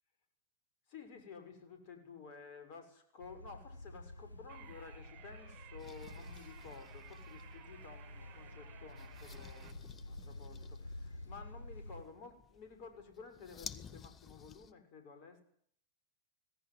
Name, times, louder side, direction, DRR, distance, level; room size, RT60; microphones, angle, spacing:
voice 1, 0.9-15.4, left 5 dB, 45° left, 7 dB, 6.5 m, -53 dB
sound 1, 3.2-12.0, left 1 dB, 80° left, 5.4 m, -50 dB
sound 2, 4.5-9.7, right 9 dB, 45° right, 4.4 m, -58 dB
sound 3, 5.8-14.7, left 7 dB, 25° left, 1.6 m, -55 dB
26.0 x 18.5 x 9.8 m, 0.64 s
figure-of-eight pair, 90°, 0 cm